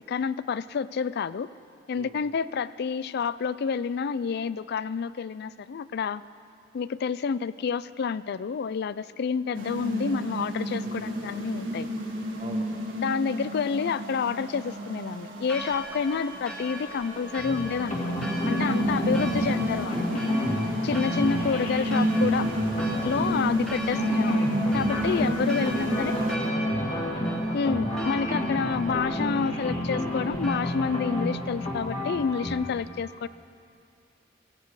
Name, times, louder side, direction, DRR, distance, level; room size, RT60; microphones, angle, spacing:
voice 1, 0.0-1.5 1.9-6.2 6.7-11.9 12.9-18.1 18.5-20.2 20.8-22.5 23.0-26.2 27.5-33.3, left 6 dB, 60° left, 17 dB, 0.4 m, -29 dB
voice 2, 1.9-2.3 10.8-11.2 12.4-12.8 23.2-23.7 25.2-28.4, right 1 dB, 35° right, 3 dB, 1.4 m, -42 dB
sound 1, 9.5-26.4, equal, 80° right, 1.8 m, -32 dB
Church bell, 15.5-30.6, right 1 dB, ahead, 1.7 m, -40 dB
sound 2, 17.4-32.7, equal, 35° left, 2.6 m, -29 dB
16.5 x 16.5 x 4.8 m, 2.6 s
head